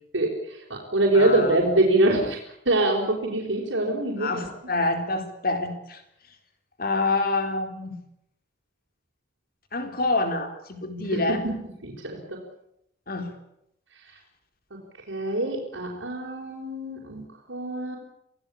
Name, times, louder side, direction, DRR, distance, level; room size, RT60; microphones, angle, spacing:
voice 1, 0.1-2.4 2.6-4.4 11.1-11.5 11.8-12.4 15.1-17.2 17.5-18.0, right 2 dB, 80° right, -2 dB, 5.0 m, -24 dB
voice 2, 1.1-1.6 4.2-6.0 6.8-8.0 9.7-11.4 13.1-13.3, left 2 dB, 50° left, 7 dB, 4.1 m, -27 dB
27.0 x 17.5 x 8.7 m, 0.77 s
head